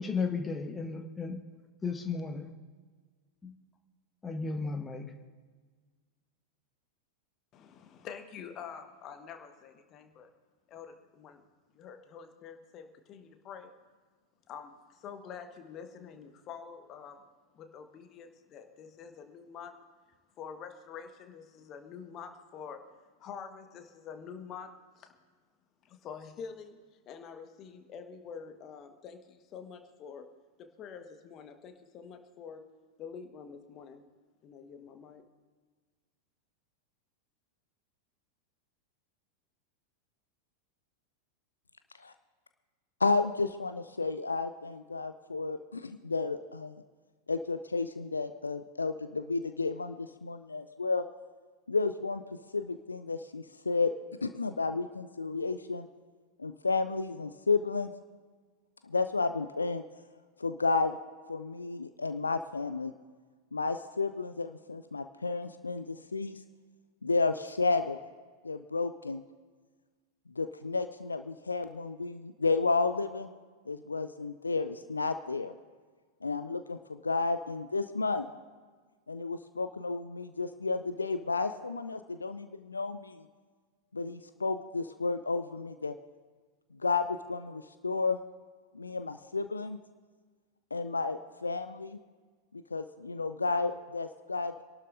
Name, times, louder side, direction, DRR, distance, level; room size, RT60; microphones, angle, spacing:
voice 1, 0.0-1.4 1.8-2.5 3.4-3.5 4.2-5.1, left 4 dB, 15° left, 6 dB, 1.2 m, -34 dB
voice 2, 7.5-10.3 10.7-11.4 11.7-13.7 14.5-17.2 17.5-19.7 20.4-22.8 23.2-25.1 25.8-26.8 27.0-30.3 30.6-32.6 33.0-34.0 34.4-35.2, left 6 dB, 35° left, 6 dB, 1.4 m, -46 dB
voice 3, 43.0-46.8 47.3-51.1 51.7-52.2 52.5-53.9 54.2-55.9 56.4-57.9 58.8-59.8 60.4-61.0 61.3-62.9 63.5-66.4 67.0-68.0 68.4-69.2 70.3-73.3 73.7-75.5 76.2-78.2 79.1-83.2 83.9-85.9 86.7-88.2 88.7-89.8 90.7-92.0 92.5-94.5, left 4 dB, 80° left, 10 dB, 0.5 m, -32 dB
26.0 x 12.0 x 2.7 m, 1.5 s
figure-of-eight pair, 90°, 0 cm